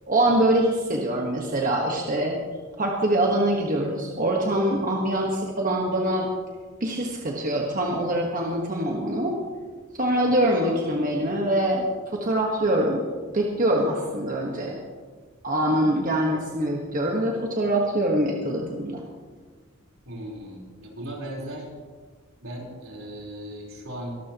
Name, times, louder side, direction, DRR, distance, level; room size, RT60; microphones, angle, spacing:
voice 1, 0.1-2.4 2.8-6.3 6.8-9.4 10.0-13.0 13.3-14.7 15.4-19.0, right 1 dB, 40° right, -1 dB, 1.3 m, -24 dB
voice 2, 20.1-21.7 22.4-24.2, right 1 dB, 75° right, -2 dB, 4.1 m, -37 dB
23.0 x 13.0 x 3.0 m, 1.5 s
head